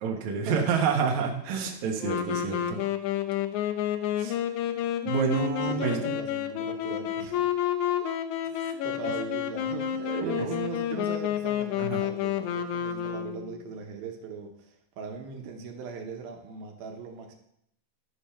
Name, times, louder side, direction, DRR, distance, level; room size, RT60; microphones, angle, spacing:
voice 1, 0.0-2.8 4.2-4.4 5.1-6.1 8.5-8.8 10.0-10.4 11.8-12.0, right 6 dB, 60° right, 2 dB, 2.3 m, -29 dB
Wind instrument woodwind instrument, 2.0-13.7, left 10 dB, 80° left, 1.7 m, -30 dB
voice 2, 5.6-7.5 8.6-17.4, right 5 dB, 80° right, 2 dB, 3.0 m, -39 dB
12.5 x 5.1 x 5.7 m, 0.74 s
omnidirectional pair, 4.2 m